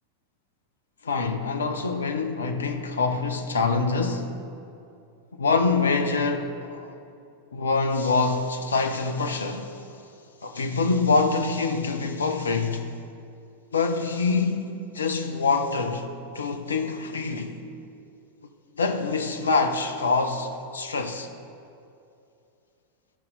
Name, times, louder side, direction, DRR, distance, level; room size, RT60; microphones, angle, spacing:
voice 1, 1.0-4.3 5.4-7.0 7.5-9.8 10.4-12.9 13.7-16.1 16.3-17.6 18.7-21.3, left 4 dB, 70° left, 0.7 m, -25 dB
13.5 x 5.7 x 3.9 m
figure-of-eight pair, 90°, 0 cm